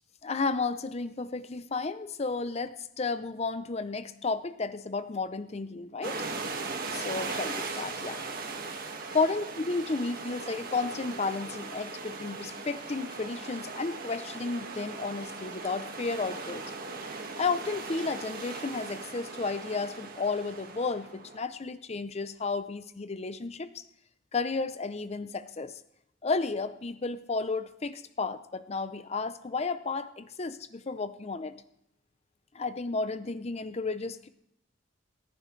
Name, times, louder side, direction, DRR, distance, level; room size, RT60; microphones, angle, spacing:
voice 1, 0.2-6.1 7.0-8.2 9.1-16.6 17.4-23.8 24.3-25.7 26.2-31.6 32.5-34.3, left 4 dB, 35° left, 13 dB, 0.5 m, -32 dB
sound 1, 6.0-21.4, right 4 dB, 50° right, 1.7 m, -39 dB
27.5 x 10.5 x 3.2 m, 0.81 s
head